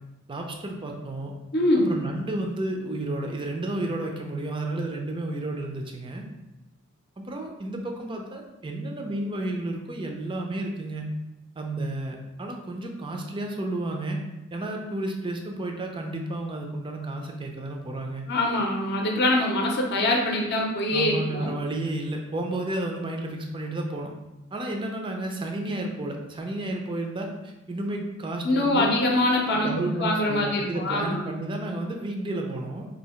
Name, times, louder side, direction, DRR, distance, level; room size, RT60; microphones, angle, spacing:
voice 1, 0.3-1.3 1.8-6.2 7.2-11.1 11.6-14.2 14.5-18.2 20.9-24.1 24.5-29.0 29.5-32.9, right 1 dB, 25° right, 2 dB, 0.4 m, -32 dB
voice 2, 1.5-1.9 18.3-21.5 28.4-31.2, left 1 dB, 50° left, 0 dB, 0.6 m, -24 dB
2.7 x 2.7 x 4.3 m, 1.0 s
head